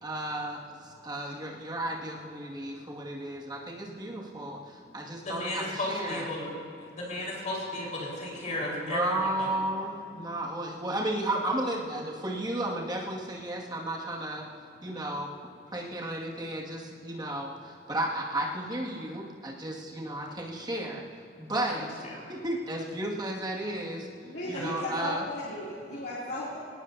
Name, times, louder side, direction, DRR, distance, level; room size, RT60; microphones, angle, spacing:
voice 1, 0.0-6.3 8.8-14.4 14.8-15.3 15.7-21.0 21.4-24.1 24.5-25.2, right 1 dB, 25° right, -3 dB, 2.2 m, -33 dB
voice 2, 5.2-9.5 21.7-22.3 24.5-24.7, left 1 dB, 45° left, -4 dB, 4.7 m, -35 dB
voice 3, 24.2-26.6, left 1 dB, 65° left, -8 dB, 3.0 m, -36 dB
21.0 x 19.0 x 2.8 m, 2.6 s
head